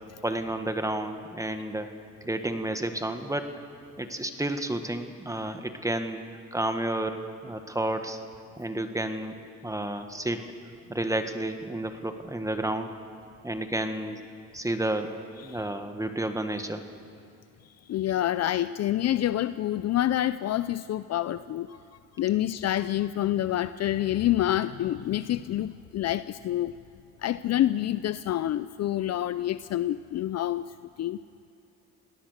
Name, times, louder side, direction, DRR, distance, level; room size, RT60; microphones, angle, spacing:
voice 1, 0.2-1.9 2.2-3.5 4.0-6.2 6.5-8.2 8.6-9.3 9.6-10.4 10.9-12.9 13.4-14.2 14.5-15.2 15.4-16.8, right 1 dB, 10° right, 7 dB, 1.7 m, -31 dB
voice 2, 17.9-21.8 22.2-26.7 27.2-31.2, left 13 dB, 60° left, 14 dB, 0.5 m, -27 dB
29.5 x 19.0 x 6.6 m, 2.5 s
cardioid pair, 90°, 30 cm